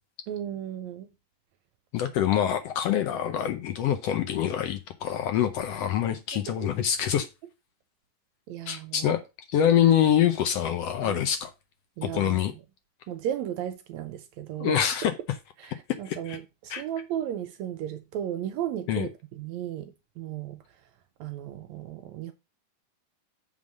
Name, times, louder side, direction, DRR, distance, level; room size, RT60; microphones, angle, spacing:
voice 1, 0.3-1.1 6.3-6.6 8.5-9.1 11.0-11.2 12.0-12.6 13.1-14.8 15.6-20.6 21.2-22.3, right 10 dB, 75° right, 1.8 m, -35 dB
voice 2, 1.9-7.3 8.7-9.2 9.5-11.5 12.0-12.5 14.6-15.1 16.1-16.4 16.7-16.8 18.9-19.1, left 10 dB, 75° left, 1.5 m, -25 dB
7.5 x 3.8 x 6.3 m
omnidirectional pair, 3.5 m